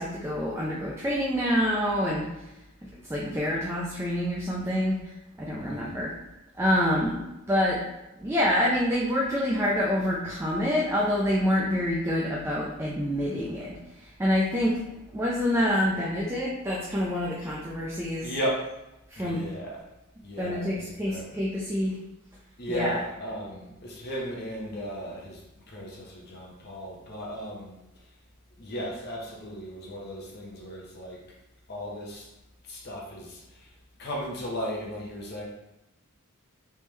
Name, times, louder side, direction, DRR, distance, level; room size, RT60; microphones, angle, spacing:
voice 1, 0.0-2.3 3.1-5.1 5.4-6.1 6.6-7.2 7.5-7.8 8.2-14.8 15.1-18.3 19.1-19.4 20.4-22.0 22.7-23.0, equal, 10° right, -5 dB, 0.5 m, -27 dB
voice 2, 5.6-6.1 18.2-18.7 19.2-19.8 20.2-21.3 22.6-25.4 25.7-27.8 28.6-31.2 31.7-32.3 32.7-33.7 34.0-35.4, equal, 50° left, -2 dB, 0.8 m, -35 dB
3.4 x 3.2 x 3.2 m, 0.96 s
head